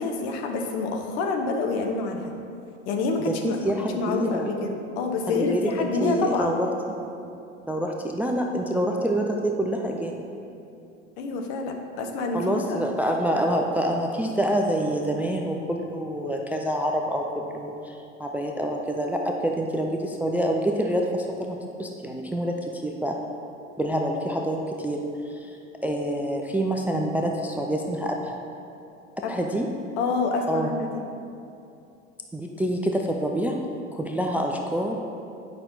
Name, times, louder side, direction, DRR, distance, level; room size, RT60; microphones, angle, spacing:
voice 1, 0.0-2.3 2.9-3.6 3.9-6.5 11.2-12.8 29.2-29.3 30.0-30.9, left 3 dB, 60° left, 3 dB, 1.1 m, -27 dB
voice 2, 3.2-4.5 5.3-6.7 7.6-10.2 12.3-23.2 23.8-25.5 25.8-28.4 29.3-29.7 30.5-30.8 32.3-33.6 33.9-35.0, equal, 5° right, 1 dB, 0.4 m, -27 dB
8.9 x 5.8 x 3.9 m, 2.7 s
hypercardioid pair, 85°, 38 cm